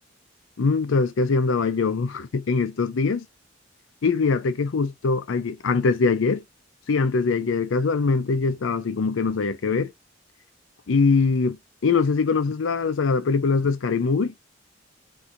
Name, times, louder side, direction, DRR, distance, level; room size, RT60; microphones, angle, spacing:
voice 1, 0.6-3.3 4.0-6.4 6.9-9.9 10.9-14.3, left 4 dB, 90° left, 0.5 m, -22 dB
4.3 x 2.7 x 2.5 m
head